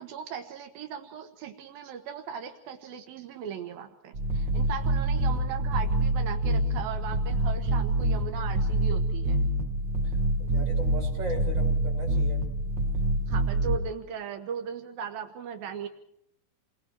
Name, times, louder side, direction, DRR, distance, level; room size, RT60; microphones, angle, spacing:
voice 1, 0.0-9.5 13.3-15.9, right 7 dB, 85° right, 5 dB, 3.2 m, -38 dB
sound 1, 4.1-13.8, right 2 dB, 45° right, 1.6 m, -26 dB
voice 2, 10.4-12.4, right 1 dB, 20° right, 0 dB, 6.5 m, -37 dB
29.5 x 22.0 x 4.6 m, 0.73 s
omnidirectional pair, 4.1 m